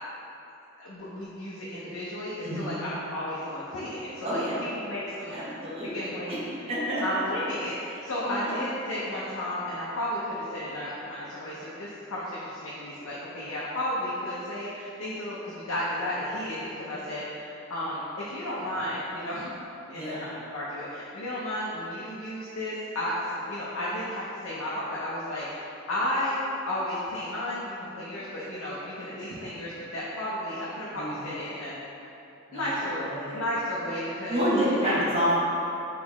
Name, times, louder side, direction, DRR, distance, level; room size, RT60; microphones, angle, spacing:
voice 1, 0.8-5.4 5.9-6.5 7.0-19.5 19.9-31.8 32.5-33.1 33.3-34.5 34.8-35.0, left 1 dB, 90° left, -8 dB, 0.6 m, -33 dB
voice 2, 2.4-2.8 4.2-4.6 5.3-6.4 6.7-7.0 8.3-8.5 19.9-20.2 31.0-31.3 32.5-32.7 32.9-33.4 34.3-35.4, equal, 30° right, -9 dB, 0.9 m, -29 dB
3.9 x 3.2 x 3.0 m, 2.9 s
head